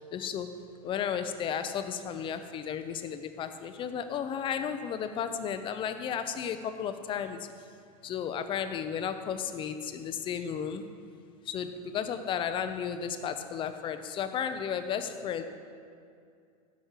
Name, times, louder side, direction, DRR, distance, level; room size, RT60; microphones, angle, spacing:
voice 1, 0.0-7.5 8.0-10.9 11.4-15.4, left 8 dB, 25° left, 9 dB, 0.6 m, -34 dB
10.5 x 5.2 x 7.4 m, 2.4 s
supercardioid pair, 135°, 19 cm